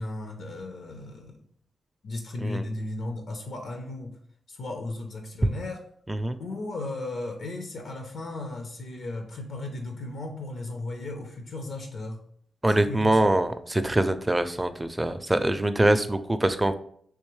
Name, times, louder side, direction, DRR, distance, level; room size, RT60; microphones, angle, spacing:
voice 1, 0.0-1.4 2.0-4.2 4.5-5.8 6.4-12.2 12.7-13.3, left 2 dB, 70° left, 3 dB, 0.6 m, -35 dB
voice 2, 6.1-6.4 12.6-16.7, right 1 dB, 20° right, 10 dB, 0.4 m, -24 dB
3.5 x 2.9 x 3.2 m, 0.62 s
cardioid pair, 65°, 0 cm